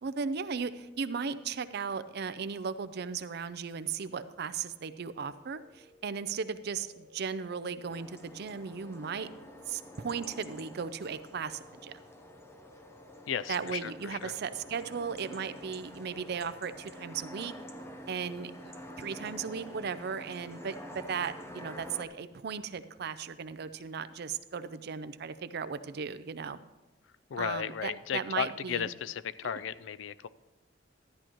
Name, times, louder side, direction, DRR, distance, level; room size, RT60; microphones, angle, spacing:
voice 1, 0.0-9.3 9.7-11.9 13.5-17.5 18.1-26.6 27.4-28.9 29.4-29.6, right 6 dB, 60° right, 13 dB, 0.5 m, -36 dB
sound 1, 5.5-19.9, left 2 dB, 60° left, 2.3 m, -59 dB
sound 2, 7.9-22.1, equal, 15° left, 0.8 m, -48 dB
voice 2, 13.3-14.3 27.3-30.3, left 8 dB, 85° left, 17 dB, 0.4 m, -35 dB
13.0 x 10.0 x 3.0 m, 1.1 s
head